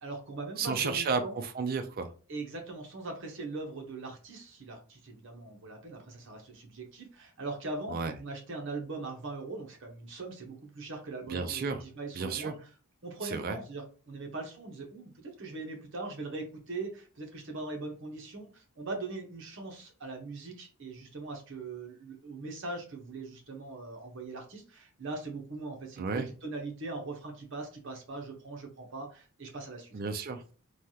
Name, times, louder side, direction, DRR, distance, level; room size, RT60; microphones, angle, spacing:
voice 1, 0.0-1.4 2.3-12.7 13.0-26.1 26.4-29.9, right 3 dB, 55° right, 2 dB, 0.8 m, -41 dB
voice 2, 0.6-2.1 7.9-8.1 11.3-11.8 12.2-12.5 13.2-13.6 26.0-26.3 29.9-30.6, right 5 dB, 40° right, 8 dB, 0.3 m, -32 dB
3.2 x 2.3 x 2.7 m, 0.38 s
head